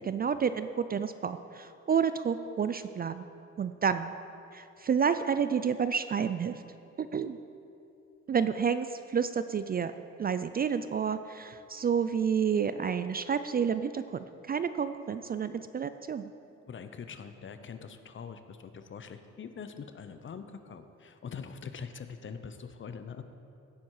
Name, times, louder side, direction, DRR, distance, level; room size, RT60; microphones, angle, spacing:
voice 1, 0.1-3.2 3.6-4.1 4.5-6.5 7.0-7.4 8.3-9.9 10.2-16.3, right 7 dB, 30° right, 11 dB, 0.4 m, -30 dB
voice 2, 16.7-23.2, left 6 dB, 40° left, 9 dB, 0.8 m, -43 dB
16.0 x 7.0 x 4.9 m, 2.8 s
cardioid pair, 90°, 30 cm